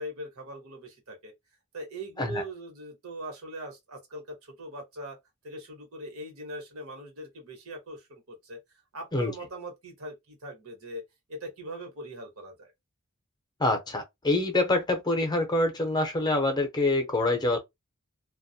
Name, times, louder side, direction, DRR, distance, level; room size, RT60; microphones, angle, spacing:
voice 1, 0.0-1.3 1.7-5.2 5.4-8.6 8.9-11.0 11.3-12.7, right 1 dB, 80° right, 1.1 m, -41 dB
voice 2, 13.6-17.6, left 2 dB, 20° left, 0.6 m, -26 dB
2.2 x 2.0 x 2.7 m
head